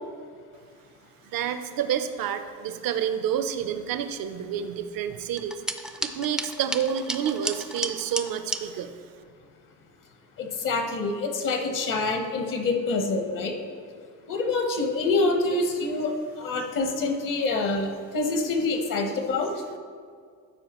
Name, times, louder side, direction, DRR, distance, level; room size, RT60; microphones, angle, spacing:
voice 1, 1.2-9.0, right 9 dB, 65° right, 10 dB, 0.7 m, -29 dB
sound 1, 5.4-8.6, right 1 dB, ahead, 0.4 m, -33 dB
voice 2, 10.4-13.5 14.3-19.5, left 3 dB, 60° left, 5 dB, 1.0 m, -26 dB
12.5 x 4.8 x 3.0 m, 2.1 s
cardioid pair, 80°, 36 cm